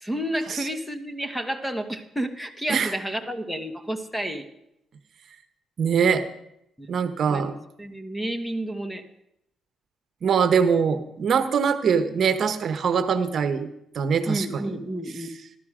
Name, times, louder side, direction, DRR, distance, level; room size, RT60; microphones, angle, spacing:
voice 1, 0.0-4.4 7.3-7.4 7.8-9.0 14.3-15.3, right 1 dB, 5° left, 8 dB, 1.4 m, -30 dB
voice 2, 5.8-6.2 6.9-7.5 10.2-13.7 13.9-14.8 15.2-15.3, right 6 dB, 55° right, 10 dB, 1.0 m, -23 dB
15.5 x 12.0 x 5.0 m, 0.79 s
cardioid pair, 90°, 0 cm